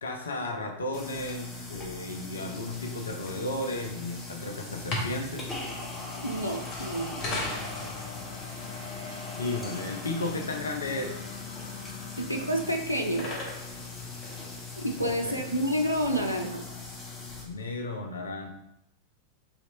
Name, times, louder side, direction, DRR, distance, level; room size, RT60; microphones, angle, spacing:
voice 1, 0.0-5.5 9.4-11.2 15.0-15.4 17.4-18.5, left 2 dB, 70° left, 2 dB, 0.5 m, -34 dB
sound 1, 0.9-17.4, left 3 dB, 15° left, 1.1 m, -40 dB
sound 2, 4.7-15.0, left 2 dB, 35° left, 1.3 m, -40 dB
voice 2, 6.2-7.2 12.2-13.3 14.8-16.6, equal, 85° right, 2 dB, 0.5 m, -29 dB
3.3 x 3.0 x 4.0 m, 0.80 s
figure-of-eight pair, 90°, 0 cm